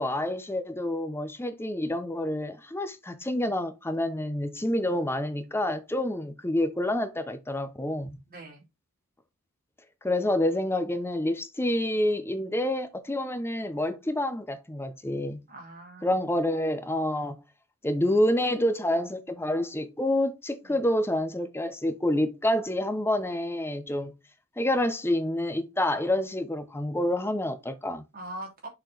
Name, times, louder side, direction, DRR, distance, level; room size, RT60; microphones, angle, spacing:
voice 1, 0.0-8.2 10.0-15.4 16.0-17.4 17.8-24.1 24.6-28.0, left 1 dB, 10° left, 0.7 m, -28 dB
voice 2, 8.3-8.6 15.5-16.2 20.6-20.8 28.1-28.7, right 1 dB, 45° right, 2.6 m, -42 dB
6.5 x 4.4 x 3.9 m
head